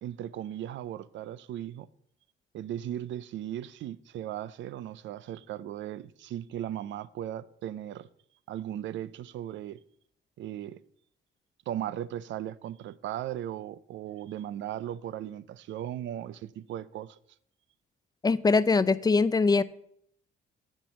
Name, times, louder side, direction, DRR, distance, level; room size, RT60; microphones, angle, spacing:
voice 1, 0.0-1.9 2.5-8.1 8.5-9.8 10.4-10.8 11.7-17.2, right 11 dB, 70° right, 0.5 m, -37 dB
voice 2, 18.2-19.6, left 4 dB, 20° left, 0.4 m, -22 dB
8.9 x 4.4 x 7.3 m
cardioid pair, 90°, 20 cm